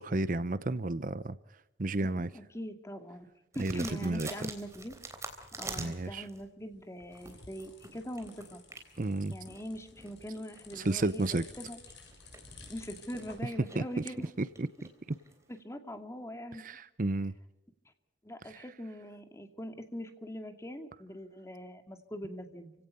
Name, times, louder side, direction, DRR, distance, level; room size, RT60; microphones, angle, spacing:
voice 1, 0.0-1.4 1.8-2.3 3.6-4.3 5.8-6.3 9.0-9.3 10.8-11.5 13.8-13.9 14.4-14.7 15.1-15.2 16.6-17.3 18.5-18.6, right 2 dB, 45° right, 15 dB, 0.7 m, -32 dB
voice 2, 2.2-3.3 3.5-4.9 5.6-8.6 9.3-11.2 11.6-11.8 12.7-14.3 15.5-16.8 18.2-22.7, equal, 15° left, 7 dB, 2.2 m, -42 dB
sound 1, 3.5-6.5 7.0-15.6, right 2 dB, 15° right, 3.5 m, -47 dB
sound 2, 6.6-13.4, left 5 dB, 70° left, 6.2 m, -54 dB
29.5 x 17.0 x 5.5 m, 0.93 s
head